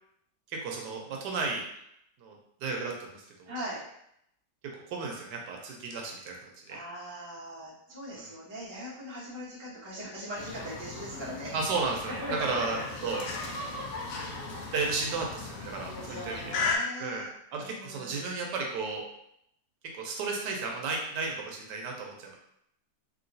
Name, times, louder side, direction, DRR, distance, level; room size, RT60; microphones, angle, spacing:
voice 1, 0.5-1.6 2.2-3.5 4.9-6.4 6.7-6.8 8.1-8.3 11.5-13.2 14.7-16.5 17.0-17.3 17.5-19.0 20.0-22.4, right 4 dB, 75° right, 0 dB, 1.2 m, -33 dB
voice 2, 3.5-3.8 6.7-11.5 12.1-12.8 13.3-13.5 15.9-17.3 17.6-18.3, equal, 25° right, -7 dB, 0.6 m, -40 dB
sound 1, 10.3-16.8, left 4 dB, 70° left, 0.8 m, -37 dB
sound 2, 10.5-11.7 11.9-16.9, left 1 dB, 55° left, 1.3 m, -42 dB
3.0 x 2.9 x 2.6 m, 0.75 s
omnidirectional pair, 1.9 m